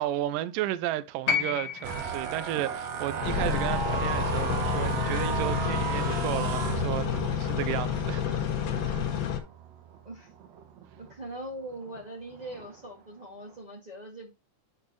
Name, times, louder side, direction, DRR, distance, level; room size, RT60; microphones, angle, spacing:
voice 1, 0.0-8.2 8.8-9.0, right 14 dB, 80° right, 2.1 m, -33 dB
sound 1, 1.3-5.4 6.6-6.7, left 7 dB, 60° left, 2.5 m, -34 dB
sound 2, 1.8-11.2 11.7-12.0 12.3-12.8, right 7 dB, 60° right, 2.0 m, -34 dB
sound 3, 3.2-9.4, left 8 dB, 85° left, 3.4 m, -29 dB
voice 2, 11.0-14.3, right 1 dB, 40° right, 0.6 m, -41 dB
10.5 x 4.5 x 3.1 m
omnidirectional pair, 4.1 m